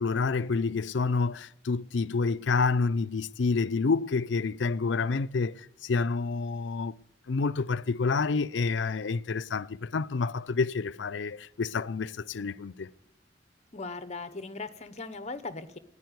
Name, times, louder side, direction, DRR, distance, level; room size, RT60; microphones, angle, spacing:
voice 1, 0.0-5.5 5.8-6.9 7.3-12.9, left 4 dB, 80° left, 0.5 m, -28 dB
voice 2, 13.7-15.8, left 3 dB, 40° left, 1.0 m, -38 dB
14.0 x 9.9 x 9.4 m
head